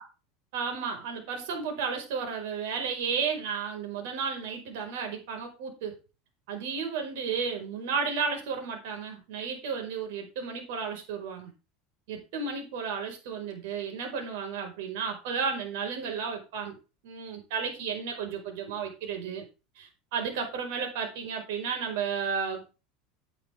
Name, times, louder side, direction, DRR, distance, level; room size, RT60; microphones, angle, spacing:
voice 1, 0.5-6.0 6.5-11.5 12.1-16.8 17.0-19.5 19.8-22.6, right 6 dB, 75° right, 3 dB, 5.4 m, -33 dB
10.5 x 8.8 x 3.7 m, 0.31 s
supercardioid pair, 140°, 0 cm